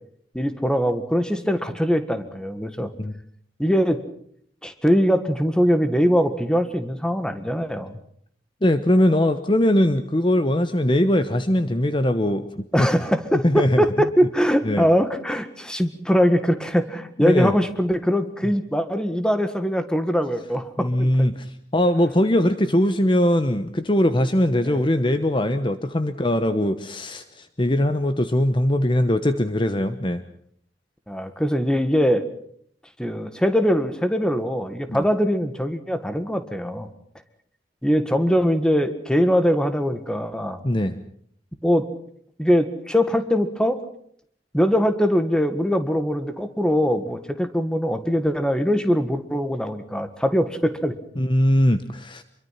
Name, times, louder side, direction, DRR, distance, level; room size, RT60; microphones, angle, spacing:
voice 1, 0.3-2.9 3.6-4.0 4.6-8.0 12.7-21.3 24.6-24.8 31.1-32.2 33.0-36.9 37.8-40.6 41.6-41.9 42.4-43.8 44.5-50.9, equal, 5° left, 9 dB, 1.7 m, -22 dB
voice 2, 8.6-12.9 13.4-13.8 14.6-14.8 17.2-17.5 20.8-30.2 34.9-35.0 40.6-40.9 51.2-52.2, left 1 dB, 30° left, 10 dB, 1.0 m, -21 dB
26.0 x 23.0 x 5.8 m, 0.65 s
head